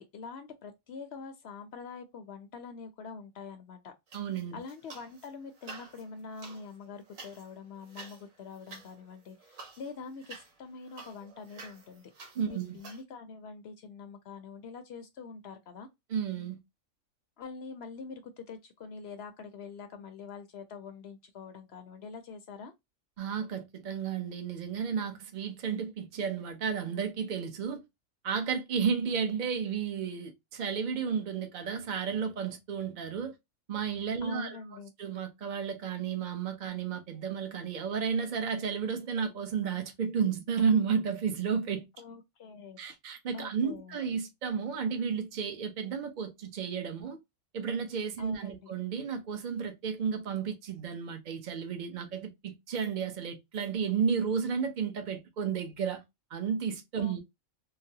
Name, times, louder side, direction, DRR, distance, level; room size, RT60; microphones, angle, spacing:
voice 1, 0.0-3.9 4.5-15.9 17.4-22.7 34.2-34.9 42.0-42.8 43.3-44.0 48.2-48.7 57.0-57.2, left 5 dB, 65° left, 0.7 m, -45 dB
voice 2, 4.1-4.6 12.4-12.8 16.1-16.6 23.2-27.8 28.2-33.3 33.7-34.6 35.0-41.9 42.8-47.2 47.5-56.0 56.3-57.2, right 6 dB, 45° right, 0.7 m, -32 dB
sound 1, 4.1-5.3 5.6-13.0, right 3 dB, 85° right, 1.4 m, -50 dB
3.9 x 2.0 x 2.7 m
omnidirectional pair, 1.4 m